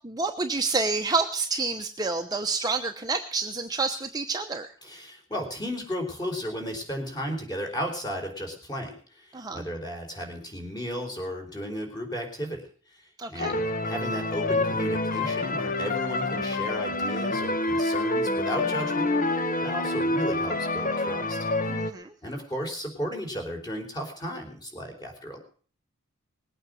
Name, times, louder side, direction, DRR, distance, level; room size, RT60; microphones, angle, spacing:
voice 1, 0.0-4.7 9.3-9.6 13.2-13.6 21.7-22.1, right 3 dB, 20° right, 4 dB, 1.0 m, -28 dB
voice 2, 4.8-12.7 13.3-19.1 19.6-21.4 22.2-25.4, equal, 20° left, 3 dB, 4.2 m, -34 dB
sound 1, 13.4-21.9, left 2 dB, 40° left, 1.3 m, -27 dB
20.0 x 8.8 x 6.4 m, 0.44 s
head